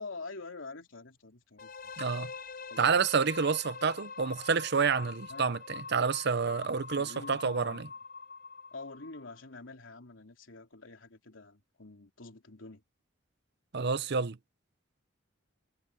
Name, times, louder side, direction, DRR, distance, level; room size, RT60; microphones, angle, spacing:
voice 1, 0.0-1.7 2.7-3.0 5.3-5.5 6.9-7.9 8.7-12.8, left 3 dB, 85° left, 3.2 m, -46 dB
sound 1, 1.6-9.4, left 5 dB, 50° left, 5.3 m, -44 dB
voice 2, 2.0-2.3 2.8-7.9 13.7-14.4, right 5 dB, 60° right, 0.7 m, -29 dB
head